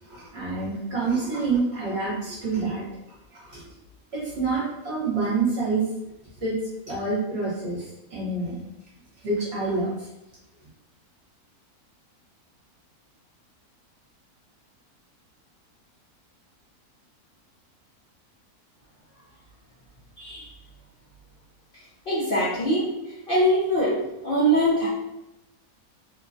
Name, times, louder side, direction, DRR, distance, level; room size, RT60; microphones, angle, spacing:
voice 1, 0.1-2.8 3.3-3.6 4.1-5.8 6.4-6.6 6.9-8.6 9.2-10.0, right 3 dB, 50° right, -7 dB, 1.2 m, -27 dB
voice 2, 22.1-22.9 23.3-24.9, right 1 dB, 50° left, -9 dB, 0.6 m, -22 dB
3.1 x 2.2 x 2.6 m, 0.92 s
omnidirectional pair, 1.6 m